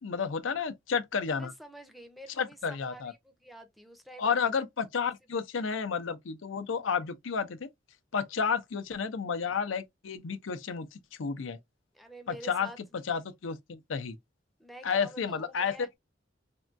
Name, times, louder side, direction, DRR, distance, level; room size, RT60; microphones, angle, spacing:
voice 1, 0.0-1.5 2.4-3.1 4.2-7.7 8.1-11.6 12.3-14.2 14.8-16.0, left 6 dB, 85° left, 0.5 m, -31 dB
voice 2, 1.3-4.4 5.3-5.4 11.9-12.8 14.6-15.9, right 1 dB, ahead, 0.5 m, -48 dB
3.5 x 2.2 x 2.5 m
head